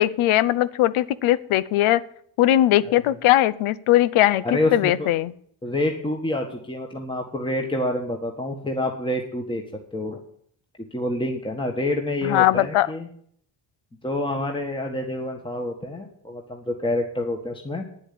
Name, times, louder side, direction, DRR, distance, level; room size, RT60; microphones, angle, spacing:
voice 1, 0.0-2.0 2.4-5.3 12.2-12.9, left 14 dB, 90° left, 17 dB, 0.8 m, -20 dB
voice 2, 4.4-5.1 5.6-9.6 9.9-10.2 10.9-13.1 14.0-17.8, left 1 dB, 10° left, 2 dB, 1.6 m, -27 dB
9.7 x 8.0 x 8.5 m, 0.64 s
cardioid pair, 100°, 48 cm